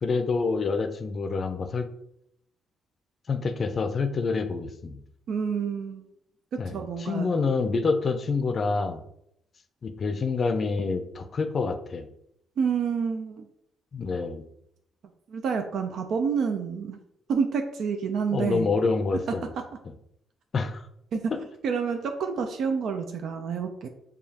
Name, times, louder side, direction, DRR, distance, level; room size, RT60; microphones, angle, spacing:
voice 1, 0.0-1.9 3.3-5.0 6.6-9.0 9.8-12.1 13.9-14.4 18.3-19.5 20.5-20.8, left 4 dB, 45° left, 8 dB, 0.5 m, -27 dB
voice 2, 5.3-6.1 6.5-7.3 12.6-13.5 15.3-17.0 17.3-18.7 19.6-19.7 21.1-21.3 21.6-23.9, right 6 dB, 70° right, 6 dB, 0.4 m, -28 dB
4.9 x 2.3 x 2.8 m, 0.76 s
cardioid pair, 90°, 0 cm